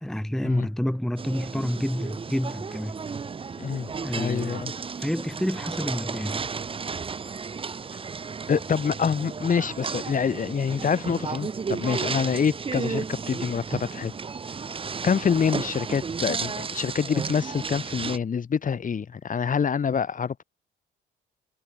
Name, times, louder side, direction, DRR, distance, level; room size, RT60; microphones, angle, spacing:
voice 1, 0.0-3.0 4.0-4.7 5.0-6.4, equal, ahead, 0.9 m, -29 dB
sound 1, 1.2-18.2, right 5 dB, 25° right, 0.7 m, -33 dB
voice 2, 3.6-3.9 4.2-4.7 8.5-14.1 15.0-20.4, left 6 dB, 40° left, 2.0 m, -26 dB
cardioid pair, 90°, 20 cm